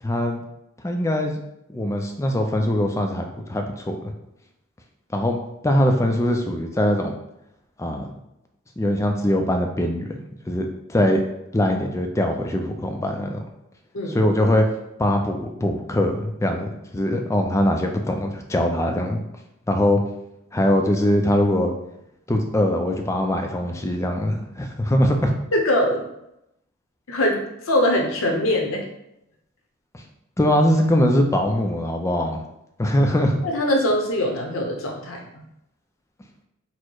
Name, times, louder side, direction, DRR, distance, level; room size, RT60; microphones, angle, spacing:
voice 1, 0.0-0.4 0.8-1.4 1.7-4.1 5.1-5.4 5.6-7.1 7.8-8.1 8.8-10.1 10.5-11.2 11.5-13.4 14.1-14.6 15.0-19.2 19.7-20.0 20.5-21.7 22.3-25.3 30.4-32.4 32.8-33.4, left 1 dB, 15° left, 3 dB, 0.4 m, -22 dB
voice 2, 25.5-26.1 27.1-28.8 33.4-35.2, left 1 dB, 60° left, 1 dB, 0.8 m, -22 dB
4.3 x 2.1 x 4.5 m, 0.84 s
head